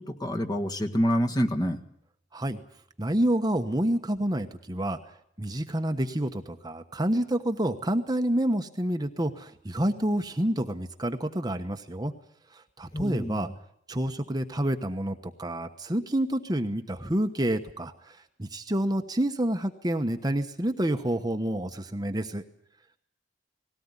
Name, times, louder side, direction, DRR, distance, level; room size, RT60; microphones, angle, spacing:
voice 1, 0.0-1.8 12.9-13.5, equal, 25° left, 4 dB, 1.6 m, -27 dB
voice 2, 3.0-5.0 5.4-12.1 12.8-13.5 13.9-22.4, right 1 dB, 20° right, 6 dB, 1.1 m, -28 dB
19.5 x 17.5 x 9.7 m, 0.70 s
head